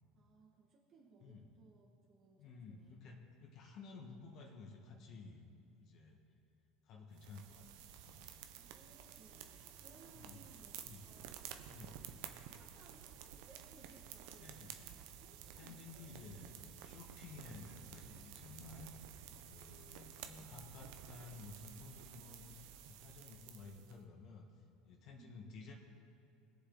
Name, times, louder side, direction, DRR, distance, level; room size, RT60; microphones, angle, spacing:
voice 1, 0.1-3.0 8.5-11.7 12.4-16.1 25.1-25.4, right 4 dB, 45° right, -3 dB, 1.8 m, -65 dB
voice 2, 2.4-5.4 5.8-6.2 6.8-8.3 10.1-11.0 11.7-11.9 14.4-14.9 15.5-19.1 19.5-24.5 24.8-25.7, left 4 dB, 55° left, 0 dB, 1.7 m, -54 dB
sound 1, 7.2-24.0, right 9 dB, 70° right, 0.9 m, -53 dB
sound 2, 9.1-21.5, equal, 35° left, 2.2 m, -71 dB
20.5 x 7.1 x 4.0 m, 2.6 s
hypercardioid pair, 85°, 0 cm